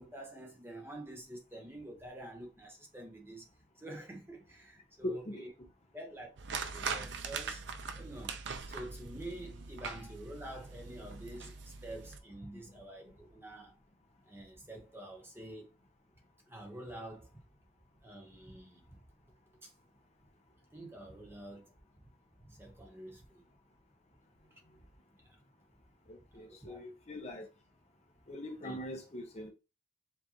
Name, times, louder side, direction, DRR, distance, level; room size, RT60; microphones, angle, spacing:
voice 1, 0.0-3.5 3.8-5.2 5.9-7.6 7.9-8.3 8.7-13.7 14.3-15.7 16.5-17.3 18.0-18.8 19.6-19.7 20.7-21.7 22.4-23.4 24.5-24.6 25.2-25.4 26.3-26.8 28.6-28.8, right 1 dB, 10° right, 1.2 m, -48 dB
voice 2, 5.0-5.4 26.1-27.5 28.3-29.5, left 1 dB, 35° left, 0.7 m, -41 dB
sound 1, 6.4-12.2, right 5 dB, 65° right, 0.5 m, -41 dB
7.4 x 2.5 x 2.8 m
head